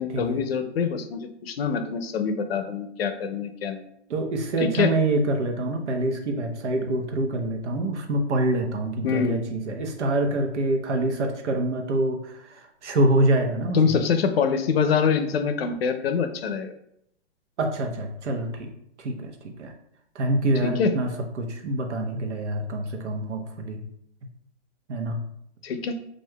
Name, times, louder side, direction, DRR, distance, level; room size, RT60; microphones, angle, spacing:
voice 1, 0.0-3.8 4.6-4.9 9.0-9.4 13.7-16.7 20.6-20.9 25.6-26.0, left 6 dB, 60° left, 8 dB, 0.5 m, -25 dB
voice 2, 4.1-14.0 17.6-18.7 19.0-19.3 19.6-19.7 20.1-21.1 21.4-23.8 24.9-25.2, right 1 dB, 90° right, 4 dB, 0.9 m, -26 dB
6.3 x 2.6 x 2.2 m, 0.73 s
hypercardioid pair, 175°, 34 cm